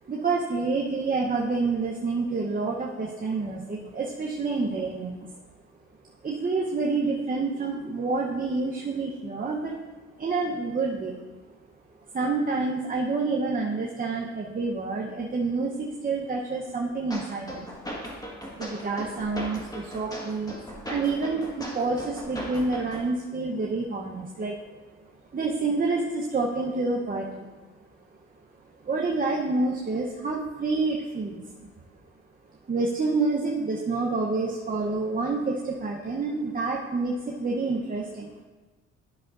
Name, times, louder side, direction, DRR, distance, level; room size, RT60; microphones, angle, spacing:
voice 1, 0.1-5.3 6.2-9.8 10.2-11.2 12.1-17.7 18.5-24.5 25.3-27.5 28.8-31.4 32.7-38.3, right 3 dB, 30° right, -2 dB, 0.8 m, -28 dB
sound 1, 17.1-23.1, equal, 10° left, 1.4 m, -38 dB
11.5 x 5.8 x 2.5 m, 1.2 s
cardioid pair, 90°, 30 cm